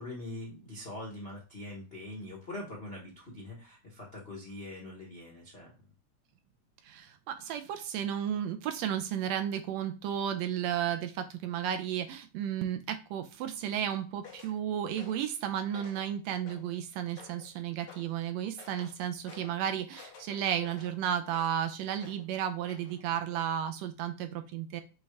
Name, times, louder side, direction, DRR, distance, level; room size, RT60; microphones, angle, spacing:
voice 1, 0.0-5.7, left 1 dB, 85° left, -3 dB, 0.5 m, -43 dB
voice 2, 6.8-24.8, right 9 dB, 80° right, 8 dB, 1.7 m, -33 dB
sound 1, 14.2-14.6 15.0-15.3 15.7-16.1 16.5-16.8 17.2-17.5 17.9-18.1 18.6-19.0 19.3-19.6 19.9-21.6 22.0-22.3 22.7-23.0 23.4-23.6, left 5 dB, 65° left, 2.3 m, -52 dB
7.0 x 2.4 x 3.2 m, 0.34 s
omnidirectional pair, 3.3 m